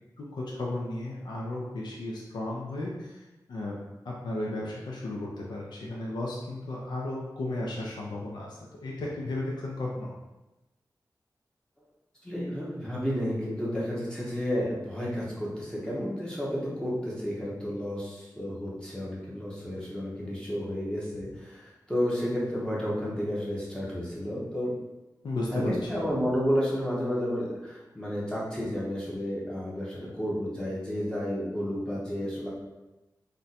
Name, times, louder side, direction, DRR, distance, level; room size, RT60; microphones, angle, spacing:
voice 1, 0.2-3.8 4.0-10.1 25.2-25.7, left 2 dB, 85° left, -3 dB, 0.5 m, -34 dB
voice 2, 12.2-24.7 25.5-32.5, equal, 10° left, -7 dB, 0.7 m, -31 dB
2.5 x 2.2 x 4.0 m, 1.1 s
wide cardioid pair, 135°, 7 cm